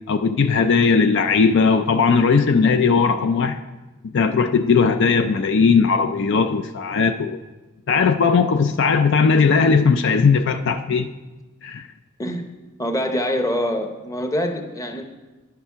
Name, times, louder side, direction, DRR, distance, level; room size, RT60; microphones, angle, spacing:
voice 1, 0.1-3.6 4.0-7.4 7.9-11.1 11.6-11.9, left 5 dB, 60° left, 8 dB, 0.4 m, -18 dB
voice 2, 12.8-15.0, equal, 15° left, 5 dB, 0.8 m, -25 dB
10.5 x 6.8 x 5.7 m, 1.1 s
head